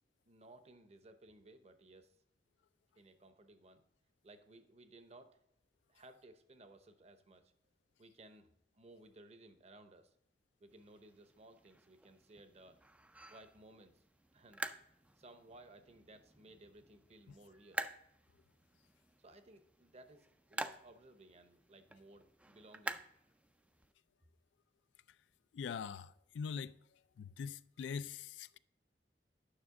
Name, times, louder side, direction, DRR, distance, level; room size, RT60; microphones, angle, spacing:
voice 1, 0.3-2.2 2.9-3.8 4.2-5.4 5.9-7.5 8.0-8.5 8.7-10.2 10.6-12.8 13.2-14.0 14.3-14.6 15.2-17.9 19.2-23.0, right 2 dB, 40° right, 0.8 m, -59 dB
sound 1, 10.7-23.9, right 2 dB, 10° right, 0.3 m, -49 dB
voice 2, 25.5-26.7 27.2-28.6, left 6 dB, 90° left, 0.3 m, -43 dB
9.6 x 6.0 x 3.7 m
head